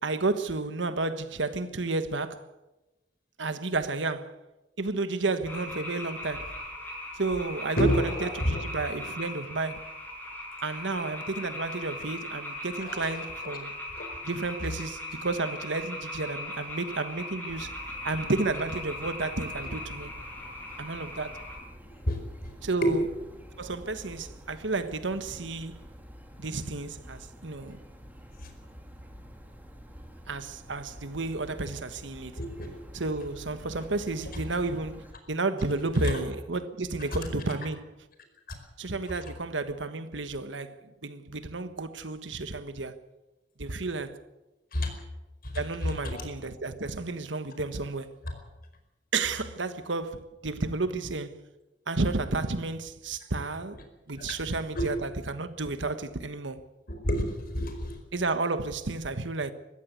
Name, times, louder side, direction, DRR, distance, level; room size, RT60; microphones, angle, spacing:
voice 1, 0.0-2.5 3.4-4.4 4.8-6.5 7.2-9.9 10.6-13.7 14.2-17.7 18.0-20.1 20.8-21.3 22.6-23.0 23.6-25.8 26.4-27.8 30.3-32.4 32.9-37.9 38.8-43.0 43.6-44.2 45.5-48.1 49.1-51.4 51.9-53.8 54.1-56.6 58.1-59.5, right 3 dB, 75° right, 1.4 m, -32 dB
sound 1, 5.4-21.6, left 1 dB, 10° left, 6.5 m, -39 dB
voice 2, 7.8-8.6 12.8-13.2 13.9-14.2 14.6-14.7 22.1-22.2 22.8-22.9 28.4-28.5 32.4-32.7 36.0-36.2 38.5-38.6 44.7-44.9 45.4-45.5 45.8-46.3 48.3-48.4 54.2-54.3 54.7-54.9 56.9-58.0, equal, 55° left, 4.8 m, -29 dB
sound 2, 17.5-35.1, equal, 10° right, 2.8 m, -48 dB
21.0 x 15.5 x 8.2 m
head